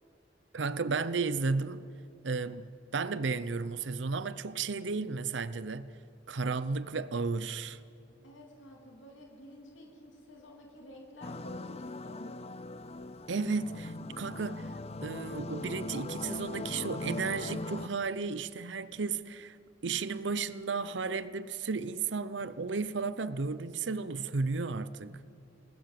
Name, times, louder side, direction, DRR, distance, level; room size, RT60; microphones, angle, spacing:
voice 1, 0.5-1.8 2.2-5.9 6.3-7.8 13.3-14.7 15.0-19.6 19.8-25.2, right 4 dB, 70° right, 0.7 m, -33 dB
voice 2, 8.2-12.4, left 1 dB, 85° left, 3.1 m, -51 dB
sound 1, 11.2-17.9, left 2 dB, 35° left, 0.6 m, -40 dB
29.5 x 20.0 x 7.6 m
head